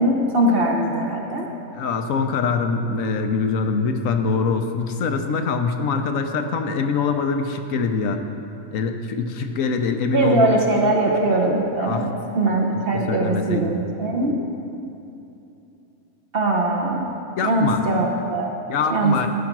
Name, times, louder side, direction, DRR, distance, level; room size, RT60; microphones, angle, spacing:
voice 1, 0.0-1.5 10.1-12.1 12.3-14.4 16.3-17.1 17.4-18.5 18.9-19.3, right 2 dB, 45° right, 1 dB, 0.9 m, -21 dB
voice 2, 1.7-8.2 8.7-10.6 11.8-12.1 12.9-13.8 17.4-17.8 18.7-19.3, left 5 dB, 70° left, 6 dB, 1.0 m, -23 dB
13.5 x 5.1 x 6.0 m, 2.8 s
omnidirectional pair, 1.5 m